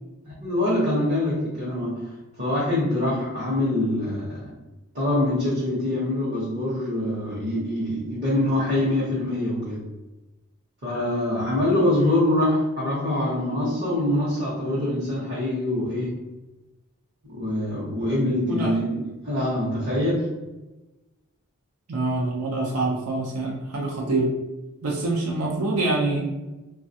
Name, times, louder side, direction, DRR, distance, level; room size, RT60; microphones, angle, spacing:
voice 1, 0.4-2.1 2.4-4.5 4.9-9.8 10.8-16.2 17.3-20.3, left 1 dB, 50° right, -8 dB, 0.9 m, -24 dB
voice 2, 11.9-12.2 18.4-18.7 21.9-24.3 24.8-26.3, right 2 dB, 85° right, -3 dB, 0.6 m, -26 dB
3.2 x 2.3 x 2.7 m, 1.1 s
head